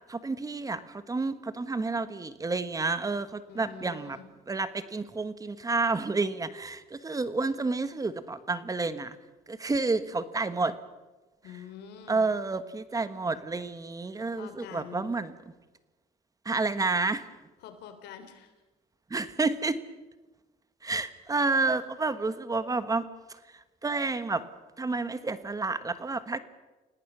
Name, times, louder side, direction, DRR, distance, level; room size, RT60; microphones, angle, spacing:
voice 1, 0.1-4.2 4.5-9.2 9.5-10.8 12.1-15.3 16.4-17.3 19.1-19.8 20.8-24.4 24.8-26.4, right 3 dB, 20° right, 12 dB, 1.3 m, -30 dB
voice 2, 3.5-4.3 11.4-12.3 14.3-15.1 17.6-18.5, left 7 dB, 80° left, 8 dB, 3.5 m, -46 dB
29.5 x 18.0 x 6.2 m, 1.1 s
cardioid pair, 110°, 17 cm